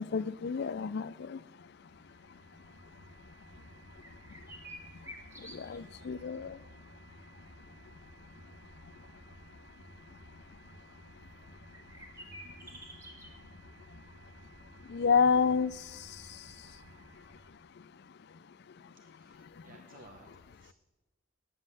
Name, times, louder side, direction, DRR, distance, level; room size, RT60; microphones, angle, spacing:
voice 1, 0.0-3.7 4.1-11.9 12.2-19.7, left 5 dB, 50° left, 17 dB, 0.4 m, -36 dB
sound 1, 1.5-17.7, right 1 dB, 80° right, 1.3 m, -56 dB
sound 2, 4.0-6.1 6.3-6.4 11.7-13.3, equal, 15° right, 1.4 m, -49 dB
voice 2, 18.9-20.7, right 2 dB, 40° right, 3 dB, 0.9 m, -58 dB
9.4 x 7.6 x 7.5 m, 1.2 s
head